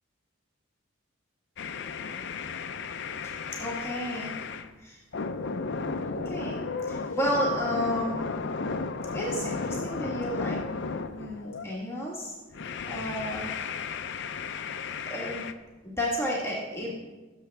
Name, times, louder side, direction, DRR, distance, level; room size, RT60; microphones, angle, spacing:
sound 1, 1.6-4.7 5.1-11.8 12.5-15.5, left 4 dB, 55° left, 0.5 m, -34 dB
voice 1, 3.6-4.3 4.8-5.0 5.8-8.2 9.1-10.6 11.1-12.3 12.8-13.5 15.1-15.4 15.8-17.1, equal, 10° left, -4 dB, 1.4 m, -32 dB
16.5 x 7.1 x 3.4 m, 1.2 s
head